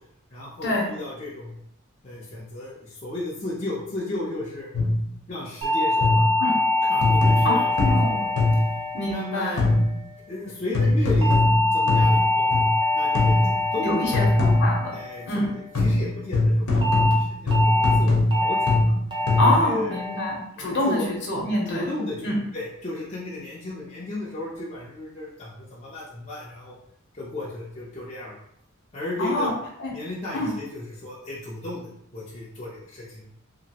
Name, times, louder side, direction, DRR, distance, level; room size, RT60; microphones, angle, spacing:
voice 1, 0.3-1.6 2.0-4.7 5.3-6.3 6.9-8.3 9.1-9.7 10.3-11.4 11.7-14.3 14.9-15.5 15.8-19.0 19.4-20.0 20.6-21.1 21.7-26.7 27.2-28.4 28.9-29.5 29.9-33.4, left 2 dB, 30° left, -7 dB, 0.6 m, -34 dB
sound 1, 4.7-5.1 6.0-6.5 7.0-8.8 9.6-10.0 10.7-12.8 13.1-13.6 14.1-14.9 15.7-19.7, left 2 dB, 90° left, 0.8 m, -21 dB
sound 2, 5.6-10.1 11.2-15.7 16.8-17.1 17.5-17.9 18.3-18.7 19.1-19.5 19.9-20.3 20.7-21.1, left 2 dB, 20° right, 0.7 m, -25 dB
voice 2, 7.8-8.2 8.9-9.6 13.8-14.9 15.2-15.5 19.4-21.8 22.2-22.4 29.2-29.5 29.8-29.9 30.3-30.5, left 1 dB, 55° left, -2 dB, 0.9 m, -25 dB
2.9 x 2.6 x 2.8 m, 0.73 s
head